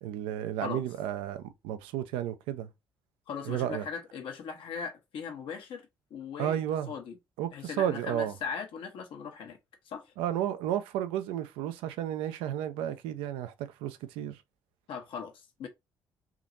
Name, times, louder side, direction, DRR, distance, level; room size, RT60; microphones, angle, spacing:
voice 1, 0.0-2.7 3.4-3.8 6.4-6.9 7.4-8.3 10.2-14.4, right 11 dB, 85° right, 0.5 m, -32 dB
voice 2, 3.3-6.6 6.9-7.2 7.5-9.6 9.8-10.1 14.9-15.7, left 6 dB, 75° left, 1.1 m, -39 dB
3.6 x 2.9 x 2.5 m
supercardioid pair, 55°, 9 cm